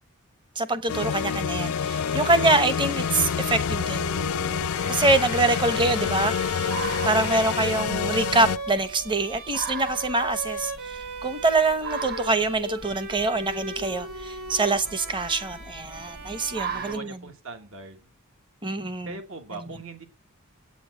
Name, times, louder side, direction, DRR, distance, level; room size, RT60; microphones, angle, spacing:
voice 1, 0.6-4.1 4.9-6.7 7.0-17.2 18.6-19.2 19.5-19.7, right 2 dB, 20° right, 0.9 m, -25 dB
sound 1, 0.9-8.6, left 7 dB, 65° left, 0.4 m, -27 dB
Bowed string instrument, 1.6-17.5, right 1 dB, 90° right, 2.8 m, -38 dB
sound 2, 3.0-17.0, right 5 dB, 40° right, 1.5 m, -41 dB
voice 2, 7.0-7.4 14.8-15.1 16.7-18.0 19.0-20.0, right 3 dB, 60° right, 1.4 m, -41 dB
8.6 x 7.0 x 8.1 m
head